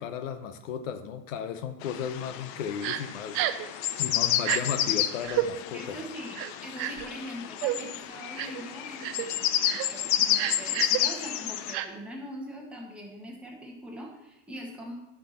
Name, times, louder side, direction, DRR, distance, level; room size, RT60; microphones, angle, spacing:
voice 1, 0.0-3.5 4.0-6.0, left 8 dB, 70° left, 9 dB, 0.9 m, -34 dB
sound 1, 1.8-11.7, left 11 dB, 35° left, 0.5 m, -30 dB
Crying sobbing, 2.8-3.0 3.3-3.7 4.4-4.6 5.2-5.5 6.3-7.1 7.6-7.8 8.4-8.6 9.0-9.3 9.6-9.9 10.3-11.0 11.7-11.9, right 15 dB, 35° right, 0.5 m, -29 dB
voice 2, 5.7-14.9, equal, 5° right, -2 dB, 1.7 m, -42 dB
10.0 x 6.3 x 4.3 m, 0.92 s
supercardioid pair, 135°, 39 cm